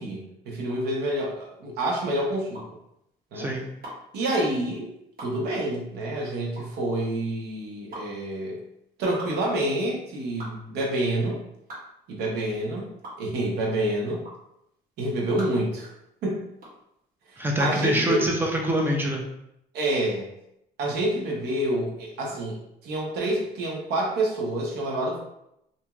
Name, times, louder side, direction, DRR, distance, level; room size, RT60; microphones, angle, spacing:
voice 1, 0.0-2.6 3.3-3.5 4.1-4.9 5.2-8.6 9.0-11.4 12.1-12.9 13.2-14.2 15.0-15.9 16.2-16.4 17.3-18.2 19.7-20.3 20.8-25.2, right 1 dB, 75° right, -1 dB, 0.9 m, -28 dB
sound 1, 0.6-17.9, right 1 dB, 60° right, 1.2 m, -44 dB
voice 2, 3.4-3.7 17.4-19.2, equal, 10° right, 0 dB, 0.6 m, -25 dB
2.8 x 2.7 x 2.4 m, 0.80 s
cardioid pair, 110°, 17 cm